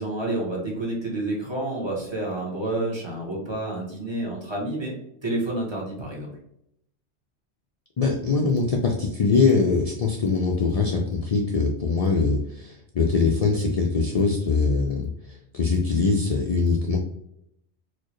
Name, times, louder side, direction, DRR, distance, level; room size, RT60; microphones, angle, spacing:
voice 1, 0.0-4.9 5.2-6.3, right 2 dB, 25° right, -3 dB, 0.9 m, -29 dB
voice 2, 8.0-15.1 15.5-17.0, left 4 dB, 70° left, 0 dB, 0.3 m, -22 dB
4.4 x 2.1 x 3.0 m, 0.76 s
omnidirectional pair, 1.2 m